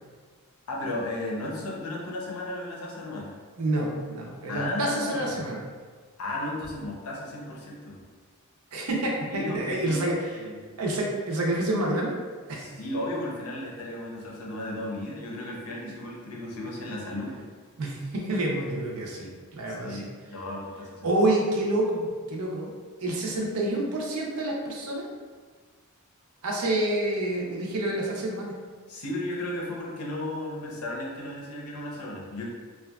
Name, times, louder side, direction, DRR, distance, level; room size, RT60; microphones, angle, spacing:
voice 1, 0.7-3.3 4.5-5.2 6.2-8.0 9.3-10.1 10.4-10.6 12.6-17.4 19.8-21.1 28.9-32.4, left 1 dB, 75° left, -2 dB, 0.6 m, -34 dB
voice 2, 3.6-5.6 8.7-10.2 10.8-12.2 12.5-12.8 17.8-20.1 21.0-22.7 23.0-25.1 26.4-28.5, right 1 dB, 80° right, -2 dB, 0.5 m, -28 dB
2.7 x 2.3 x 2.2 m, 1.5 s
head